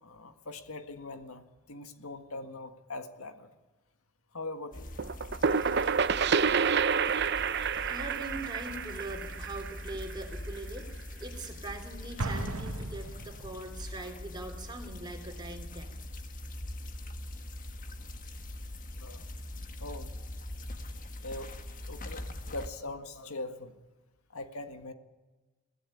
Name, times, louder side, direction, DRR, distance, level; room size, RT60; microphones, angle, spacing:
voice 1, 0.0-3.5 4.3-4.9 18.9-19.3 19.8-20.1 21.2-21.5 21.8-23.8 24.3-24.9, left 2 dB, 85° left, 8 dB, 1.8 m, -41 dB
sound 1, 4.7-22.7, left 1 dB, 40° left, 1.6 m, -42 dB
sound 2, 5.0-10.6, right 6 dB, 50° right, 0.7 m, -28 dB
voice 2, 7.8-15.9, right 2 dB, 20° right, 3 dB, 3.5 m, -42 dB
Explosion, 12.2-13.8, right 2 dB, 75° right, 1.6 m, -36 dB
23.5 x 16.5 x 9.9 m, 1.2 s
head